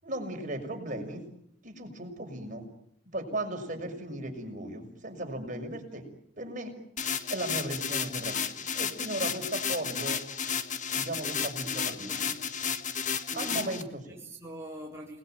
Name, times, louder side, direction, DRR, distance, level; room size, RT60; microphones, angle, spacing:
voice 1, 0.0-1.3 1.6-2.7 3.1-6.1 6.4-6.7 7.3-8.5 8.7-10.2 10.9-12.2 13.3-14.0, right 1 dB, 45° right, 6.3 m, -36 dB
sound 1, 7.0-13.8, left 7 dB, 45° left, 1.7 m, -32 dB
voice 2, 11.6-12.6 13.3-15.2, right 1 dB, 15° right, 3.9 m, -44 dB
29.5 x 20.5 x 9.3 m
head